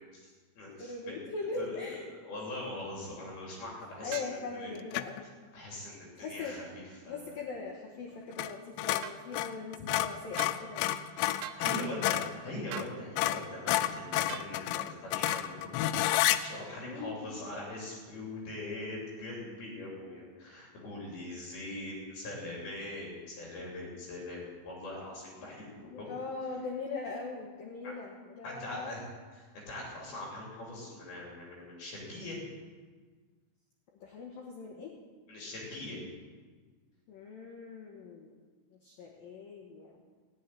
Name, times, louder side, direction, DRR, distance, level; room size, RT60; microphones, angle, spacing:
voice 1, 0.2-1.2 1.6-4.7 5.2-7.5 11.6-15.7 16.4-26.1 27.8-27.9 28.4-29.0 29.3-32.4 35.3-36.0, left 1 dB, 50° left, -3 dB, 4.6 m, -42 dB
voice 2, 0.8-2.0 4.0-5.3 6.2-6.6 7.1-10.9 11.6-12.3 16.8-17.3 25.8-28.9 34.0-34.9 37.1-38.3 38.8-39.9, left 4 dB, 70° left, 0 dB, 2.2 m, -41 dB
sound 1, 4.1-4.4 9.0-9.2 10.4-10.6 11.4-11.7 12.7-13.0 14.3-14.5 15.3-15.5, right 12 dB, 85° right, 3.2 m, -42 dB
sound 2, 4.9-5.2 8.3-8.5 8.8-12.3 12.8-12.9 13.2-16.4, left 14 dB, 90° left, 3.3 m, -30 dB
16.5 x 7.4 x 9.9 m, 1.5 s
omnidirectional pair, 5.9 m